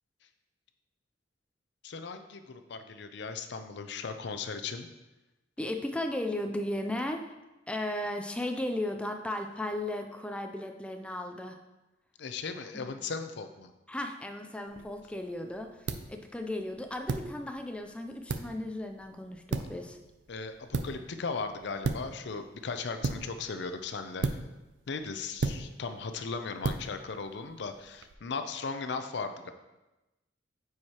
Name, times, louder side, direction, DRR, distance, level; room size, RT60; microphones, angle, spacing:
voice 1, 1.8-4.9 12.2-13.7 20.3-24.4 24.9-29.5, left 4 dB, 65° left, 8 dB, 0.5 m, -37 dB
voice 2, 5.6-7.3 7.7-11.6 12.7-12.9 13.9-20.0, left 1 dB, 5° left, 4 dB, 0.3 m, -35 dB
sound 1, 14.7-28.1, right 3 dB, 70° right, 0.5 m, -38 dB
9.0 x 4.7 x 2.9 m, 1.0 s
head